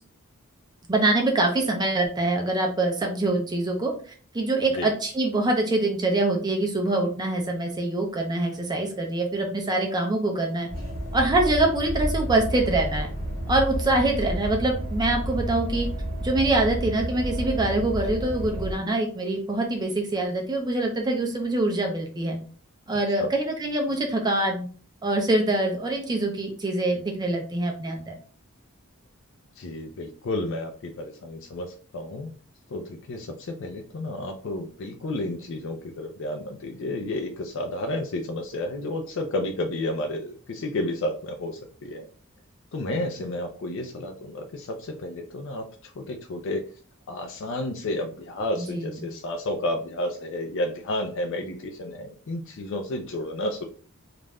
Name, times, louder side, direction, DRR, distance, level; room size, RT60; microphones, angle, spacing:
voice 1, 0.9-3.9 4.3-10.7 11.1-13.1 13.5-15.9 16.2-22.4 22.9-24.7 25.0-28.1 48.6-48.9, right 2 dB, 20° right, 2 dB, 0.4 m, -24 dB
sound 1, 10.7-18.7, equal, 45° right, 1.0 m, -30 dB
voice 2, 29.6-32.3 32.7-42.1 42.7-46.7 47.1-53.6, left 1 dB, 60° left, 4 dB, 0.4 m, -31 dB
2.4 x 2.1 x 3.3 m, 0.41 s
head